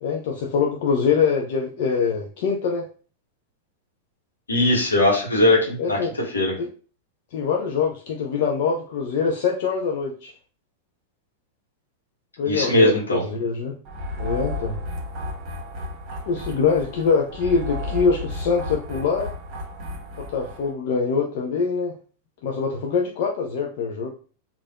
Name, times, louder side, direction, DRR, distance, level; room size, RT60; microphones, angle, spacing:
voice 1, 0.0-2.9 5.8-6.1 6.6-6.7 7.3-10.3 12.4-13.7 14.2-14.8 16.3-19.3 20.2-21.9 22.4-24.1, left 5 dB, 50° left, 0 dB, 0.4 m, -24 dB
voice 2, 4.5-6.0 6.3-6.5 12.5-13.2, left 1 dB, 75° left, -2 dB, 1.0 m, -19 dB
sound 1, 13.8-20.7, left 1 dB, 35° right, 1.1 m, -33 dB
3.2 x 2.4 x 2.3 m, 0.40 s
figure-of-eight pair, 90°, 0 cm